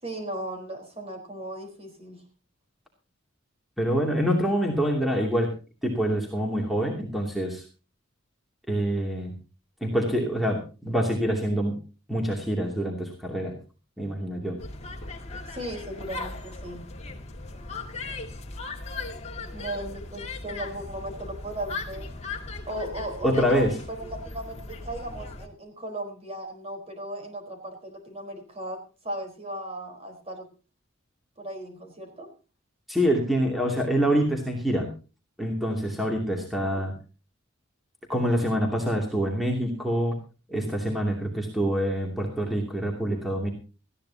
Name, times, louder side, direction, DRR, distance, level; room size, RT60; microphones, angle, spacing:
voice 1, 0.0-2.2 15.5-16.9 19.5-22.1 22.7-28.8 29.0-30.5 31.4-32.3 36.4-36.8, right 1 dB, 30° right, 4 dB, 4.3 m, -36 dB
voice 2, 3.8-5.5 5.8-7.6 8.7-9.3 9.8-11.8 12.1-13.6 14.0-14.6 23.2-23.7 32.9-34.9 35.4-36.9 38.1-40.1 40.5-43.5, equal, ahead, 0 dB, 2.7 m, -26 dB
sound 1, 14.6-25.5, left 3 dB, 30° left, 2.1 m, -38 dB
19.5 x 15.0 x 2.9 m, 0.33 s
head